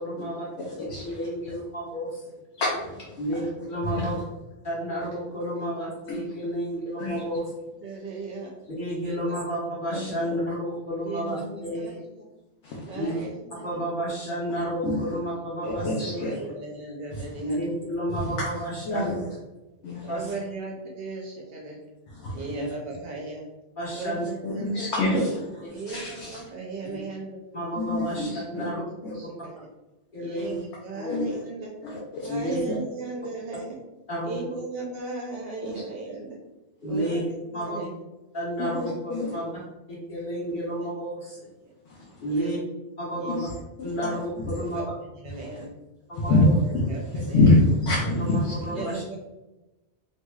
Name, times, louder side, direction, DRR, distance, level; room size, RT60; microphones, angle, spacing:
voice 1, 0.0-0.4 1.0-2.2 3.2-4.2 4.6-7.4 8.8-11.4 11.6-12.0 12.9-13.1 13.6-16.2 17.4-19.1 20.1-20.2 22.6-22.7 23.8-24.2 25.0-25.1 25.6-25.7 26.9-27.0 27.5-28.8 30.1-30.5 30.9-31.1 32.3-32.6 34.1-34.4 36.8-37.2 37.5-37.8 38.3-39.5 40.1-41.4 42.2-42.6 43.0-43.5 43.8-44.9 46.1-46.5 48.2-49.0, equal, 50° left, -7 dB, 1.3 m, -31 dB
voice 2, 0.6-1.2 2.6-3.0 3.9-4.1 6.1-6.2 7.0-7.2 9.9-10.4 11.4-11.5 12.6-12.9 14.8-15.0 15.6-16.5 17.1-17.3 18.2-18.4 18.8-19.2 19.8-20.2 22.1-22.4 24.4-26.4 27.8-28.7 29.0-29.1 31.1-31.2 31.8-32.3 32.7-32.8 35.6-35.8 38.6-39.3 41.9-42.2 43.3-43.5 43.8-44.1 44.4-44.5 46.1-46.4 46.7-46.8 47.2-48.9, left 2 dB, 85° left, -5 dB, 1.0 m, -26 dB
voice 3, 7.8-8.5 9.0-9.4 11.0-12.3 12.9-13.8 16.2-17.6 19.1-19.3 20.0-21.8 22.3-23.5 23.9-25.1 25.7-27.4 28.1-28.6 29.1-29.6 30.2-31.7 32.2-33.8 34.2-36.4 36.9-37.3 37.5-37.9 39.3-39.5 40.8-40.9 41.6-41.7 42.3-42.6 43.1-43.3 44.6-45.7 46.2-46.5 46.9-47.5 48.7-49.2, right 3 dB, 65° right, -1 dB, 0.8 m, -37 dB
3.0 x 2.8 x 2.2 m, 1.1 s
omnidirectional pair, 1.1 m